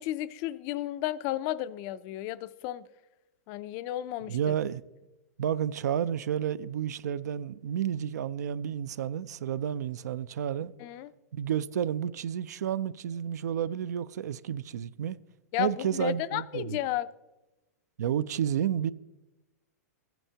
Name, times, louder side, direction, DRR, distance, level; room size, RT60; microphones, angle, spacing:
voice 1, 0.0-2.8 3.5-4.5 10.8-11.1 15.5-17.1, left 14 dB, 40° left, 0.4 m, -33 dB
voice 2, 4.3-4.8 5.4-10.7 11.3-15.2 15.6-16.8 18.0-18.9, right 9 dB, 85° right, 0.4 m, -31 dB
15.0 x 8.9 x 2.8 m
hypercardioid pair, 140°, 9 cm